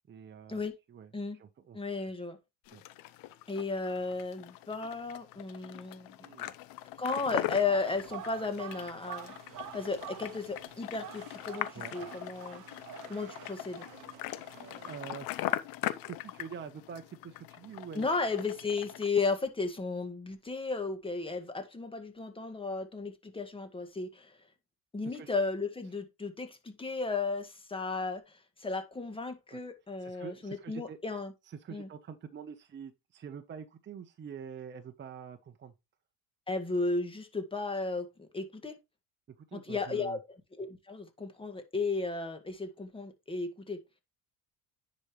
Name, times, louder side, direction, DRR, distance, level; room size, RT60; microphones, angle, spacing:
voice 1, 0.1-0.6 0.9-1.8 2.7-2.8 6.2-6.5 11.7-12.1 14.4-15.4 16.1-18.4 25.0-25.3 29.5-29.6 30.0-31.0 31.4-35.7 39.5-40.2, right 7 dB, 30° right, 0.9 m, -46 dB
voice 2, 1.7-2.4 3.5-6.1 7.0-12.6 13.1-13.8 17.9-24.4 24.9-31.3 31.7-31.9 36.5-38.8 39.5-40.2 40.6-43.8, left 3 dB, 15° left, 1.8 m, -34 dB
sound 1, 2.7-19.1, left 15 dB, 70° left, 0.8 m, -41 dB
sound 2, 7.3-15.0, right 12 dB, 60° right, 0.9 m, -48 dB
9.8 x 5.2 x 3.1 m
cardioid pair, 115°, 36 cm